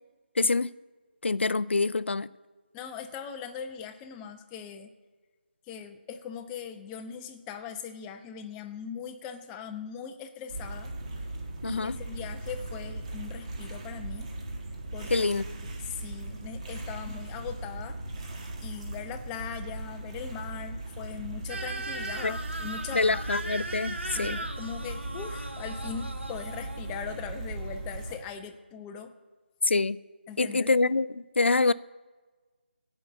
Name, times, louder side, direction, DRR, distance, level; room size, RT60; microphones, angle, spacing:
voice 1, 0.4-0.7 1.2-2.3 11.6-12.0 15.1-15.4 22.2-22.3 22.9-24.4 29.6-30.0 30.4-31.7, left 3 dB, 80° left, 0.5 m, -25 dB
voice 2, 2.7-4.9 5.7-10.9 11.6-14.3 14.9-18.0 18.6-23.2 24.1-29.1 30.3-30.7, left 7 dB, 10° left, 0.7 m, -40 dB
sound 1, 10.5-28.2, right 2 dB, 30° right, 1.8 m, -38 dB
sound 2, 21.5-28.2, right 2 dB, 85° right, 1.9 m, -39 dB
15.5 x 5.6 x 8.1 m
figure-of-eight pair, 160°, 6 cm